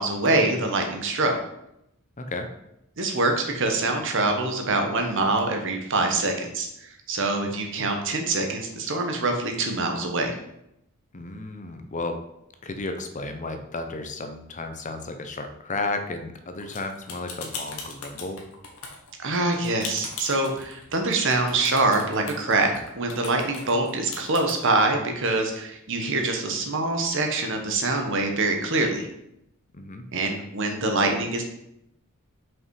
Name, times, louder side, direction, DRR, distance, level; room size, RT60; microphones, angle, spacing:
voice 1, 0.0-1.3 3.0-10.3 19.2-29.1 30.1-31.4, right 2 dB, 60° right, 4 dB, 1.2 m, -25 dB
voice 2, 2.2-2.5 11.1-12.2 12.6-18.4 29.7-30.0, left 2 dB, 35° left, 7 dB, 0.7 m, -33 dB
sound 1, 16.6-24.5, left 4 dB, 75° left, 1.5 m, -38 dB
5.8 x 5.4 x 4.8 m, 0.81 s
head